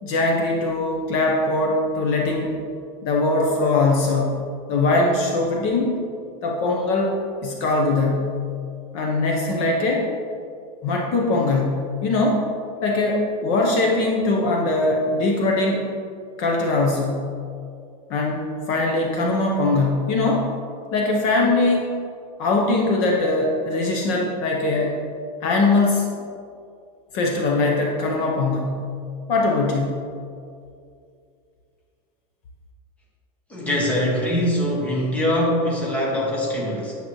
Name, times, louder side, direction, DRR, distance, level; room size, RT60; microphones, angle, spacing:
voice 1, 0.0-2.5 3.0-6.0 6.4-8.4 8.9-10.1 10.8-12.4 12.8-15.9 16.4-17.4 18.1-20.5 20.9-22.0 22.4-25.0 25.4-26.1 27.1-28.9 29.3-30.0, left 2 dB, 35° left, -1 dB, 0.7 m, -21 dB
voice 2, 33.5-36.9, equal, 5° left, -4 dB, 1.0 m, -23 dB
8.8 x 6.8 x 3.0 m, 2.4 s
supercardioid pair, 180°, 21 cm